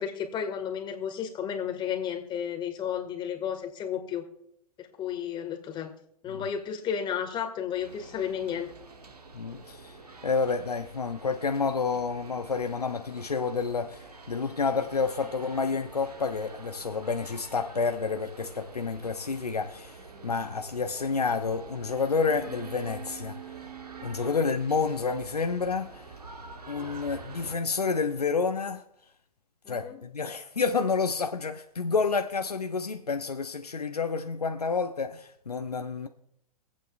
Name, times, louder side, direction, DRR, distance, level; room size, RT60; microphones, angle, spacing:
voice 1, 0.0-4.3 4.8-5.9 6.2-8.7 24.2-24.3 26.8-26.9 29.6-30.0, left 8 dB, 25° left, 1.8 m, -33 dB
sound 1, 7.8-27.5, right 4 dB, 80° right, 1.4 m, -46 dB
voice 2, 9.3-10.0 10.2-23.4 24.0-26.2 26.7-28.8 29.7-36.1, left 4 dB, 85° left, 0.8 m, -29 dB
23.5 x 8.5 x 2.5 m
figure-of-eight pair, 105°, 20 cm